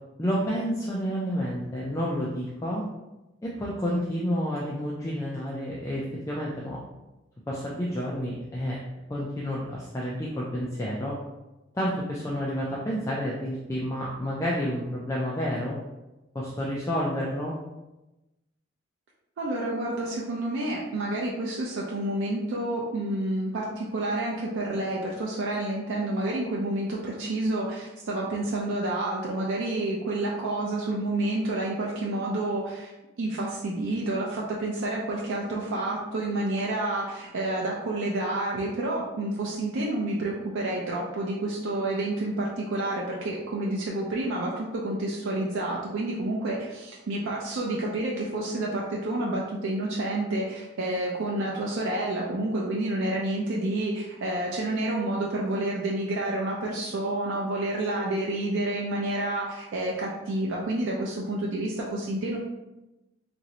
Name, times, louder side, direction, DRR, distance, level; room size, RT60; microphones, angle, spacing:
voice 1, 0.2-2.8 3.4-6.8 7.5-8.8 9.1-11.2 11.7-15.8 16.3-17.6, equal, 15° left, -5 dB, 0.3 m, -30 dB
voice 2, 19.4-32.9 33.2-62.4, right 1 dB, 90° right, -3 dB, 0.4 m, -29 dB
3.0 x 2.6 x 2.8 m, 1.0 s
head